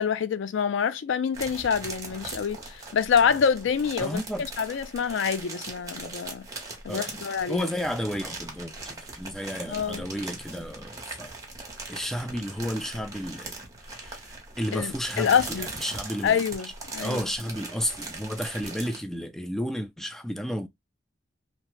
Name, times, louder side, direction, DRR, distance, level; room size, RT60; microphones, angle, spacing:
voice 1, 0.0-4.2 4.6-6.4 6.8-7.7 9.7-10.0 14.7-15.7 16.2-17.2, left 7 dB, 80° left, 0.4 m, -26 dB
sound 1, 1.3-19.0, right 3 dB, 20° right, 0.9 m, -40 dB
voice 2, 4.0-4.5 6.9-7.2 7.5-11.3 11.9-13.6 13.9-14.3 14.6-16.4 17.0-20.7, equal, ahead, 0.3 m, -32 dB
2.8 x 2.1 x 3.0 m
head